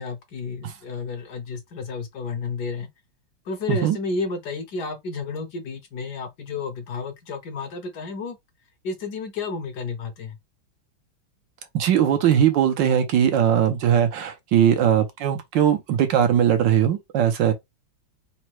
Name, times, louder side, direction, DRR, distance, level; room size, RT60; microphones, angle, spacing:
voice 1, 0.0-2.9 3.4-8.4 8.8-10.4, left 4 dB, 65° left, 1.2 m, -31 dB
voice 2, 11.7-17.5, right 9 dB, 70° right, 1.3 m, -20 dB
4.1 x 2.2 x 4.5 m
omnidirectional pair, 2.2 m